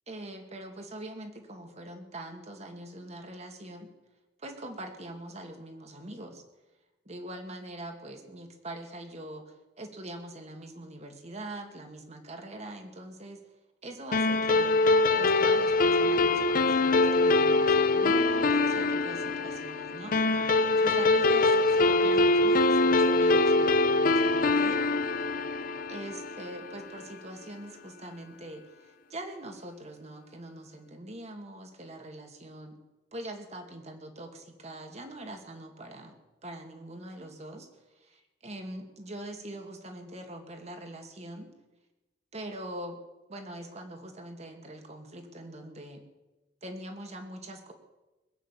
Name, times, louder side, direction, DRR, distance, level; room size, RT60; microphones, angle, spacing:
voice 1, 0.1-3.9 4.4-6.4 7.1-13.4 13.8-14.7 15.2-24.9 25.9-32.8 33.1-36.2 36.4-37.7 37.9-41.5 42.3-43.0 43.3-46.0 46.6-47.7, right 1 dB, 40° right, 5 dB, 2.2 m, -43 dB
sound 1, 14.1-26.9, left 2 dB, 50° left, 0.7 m, -24 dB
21.0 x 9.0 x 7.5 m, 1.1 s
head